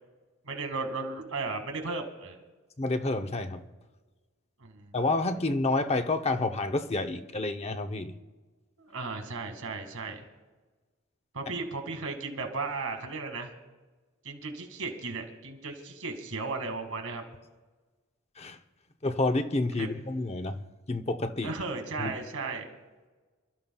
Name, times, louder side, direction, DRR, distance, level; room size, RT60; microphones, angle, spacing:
voice 1, 0.4-2.4 4.6-5.0 8.8-10.2 11.3-13.5 14.2-17.2 19.8-19.9 21.4-22.7, right 3 dB, 85° right, 2.1 m, -35 dB
voice 2, 2.8-3.6 4.9-8.1 18.4-18.6 19.0-21.5 22.0-22.1, left 2 dB, 30° left, 0.7 m, -29 dB
29.5 x 13.0 x 2.3 m
head